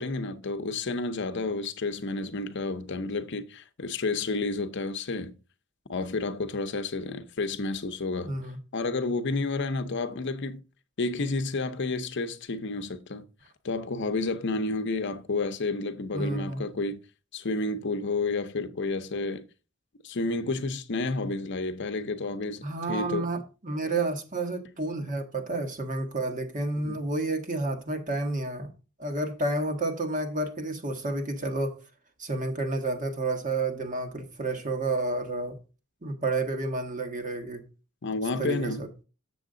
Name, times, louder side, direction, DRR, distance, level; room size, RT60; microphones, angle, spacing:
voice 1, 0.0-5.3 5.9-8.3 8.7-10.6 11.0-13.2 13.6-17.0 17.3-19.4 20.0-23.3 26.8-27.0 38.0-38.9, left 3 dB, 60° left, 0.7 m, -30 dB
voice 2, 8.3-8.6 16.1-16.6 22.6-28.7 29.0-31.8 32.2-35.6 36.0-37.6 38.4-38.9, right 2 dB, 40° right, 1.4 m, -30 dB
7.8 x 7.0 x 3.8 m
head